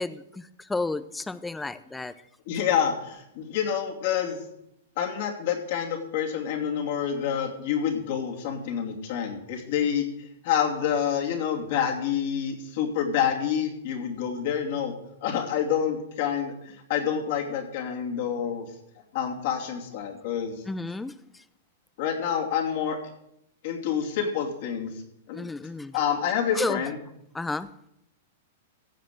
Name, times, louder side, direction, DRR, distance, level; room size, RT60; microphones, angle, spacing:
voice 1, 0.0-2.1 20.7-21.1 25.3-26.0 26.5-26.8 27.3-27.7, left 3 dB, 10° left, 15 dB, 0.6 m, -32 dB
voice 2, 2.5-4.4 5.0-14.9 15.2-18.7 19.1-20.6 22.0-23.0 23.6-24.9 25.3-25.5 25.9-27.0, left 8 dB, 60° left, 1 dB, 2.7 m, -28 dB
15.5 x 5.2 x 7.7 m, 0.79 s
hypercardioid pair, 115°, 0 cm